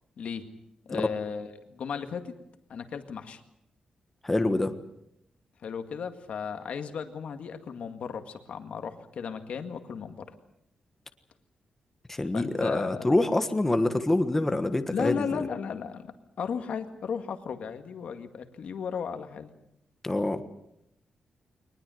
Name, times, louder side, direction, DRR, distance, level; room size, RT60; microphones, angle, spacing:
voice 1, 0.9-2.3 2.7-3.4 5.6-10.2 12.3-13.1 14.9-19.5, left 6 dB, 65° left, 7 dB, 2.0 m, -35 dB
voice 2, 4.2-4.7 12.1-15.4 20.0-20.4, left 2 dB, 10° left, 8 dB, 1.4 m, -26 dB
22.5 x 20.0 x 7.9 m, 0.79 s
wide cardioid pair, 165°, 2 cm